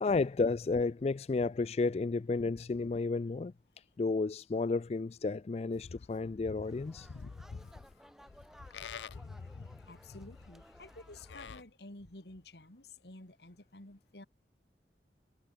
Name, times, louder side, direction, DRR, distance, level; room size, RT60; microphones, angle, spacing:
voice 1, 0.0-3.5 4.0-7.1, left 3 dB, 35° left, 0.3 m, -32 dB
Livestock farm animals working animals, 5.7-11.6, left 5 dB, 90° left, 0.5 m, -48 dB
sound 1, 6.6-11.6, equal, 5° right, 1.9 m, -59 dB
voice 2, 9.9-14.3, left 2 dB, 70° left, 3.0 m, -51 dB
head